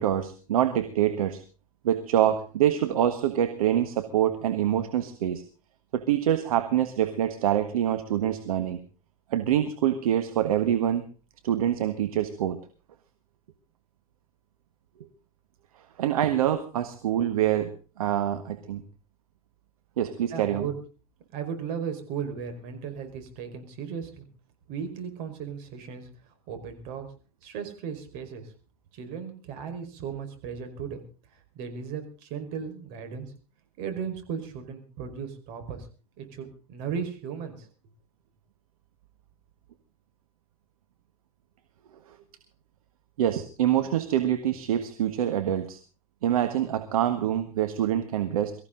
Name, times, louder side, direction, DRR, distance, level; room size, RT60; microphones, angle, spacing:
voice 1, 0.0-1.4 1.8-5.4 5.9-8.8 9.3-11.0 11.4-12.6 16.0-17.7 18.0-18.8 20.0-20.7 43.2-45.8 46.2-48.5, right 11 dB, 75° right, 9 dB, 1.5 m, -25 dB
voice 2, 20.3-20.8 21.3-24.3 24.7-26.1 26.5-27.1 27.4-28.5 28.9-31.0 31.3-33.3 33.8-35.9 36.2-37.7, right 7 dB, 60° right, 6 dB, 5.1 m, -36 dB
23.5 x 14.5 x 3.9 m, 0.36 s
hypercardioid pair, 85°, 18 cm